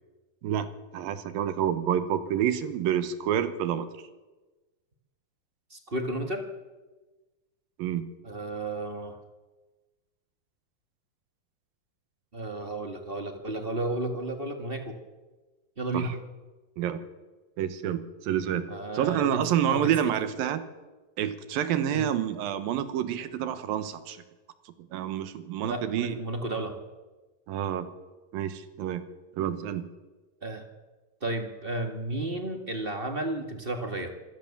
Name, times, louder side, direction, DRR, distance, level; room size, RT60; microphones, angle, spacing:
voice 1, 0.9-3.9 7.8-8.1 15.9-16.1 16.8-17.0 17.6-18.7 18.9-20.6 21.2-24.2 24.8-26.2 27.5-27.9 28.3-29.0 29.4-29.9, right 10 dB, 85° right, 11 dB, 3.0 m, -28 dB
voice 2, 5.7-6.5 8.2-9.2 12.3-15.0 15.8-16.2 18.7-20.1 21.9-22.0 25.6-26.8 30.4-30.7 31.2-34.1, right 2 dB, 30° right, 5 dB, 1.0 m, -33 dB
26.0 x 16.5 x 7.3 m, 1.2 s
omnidirectional pair, 4.1 m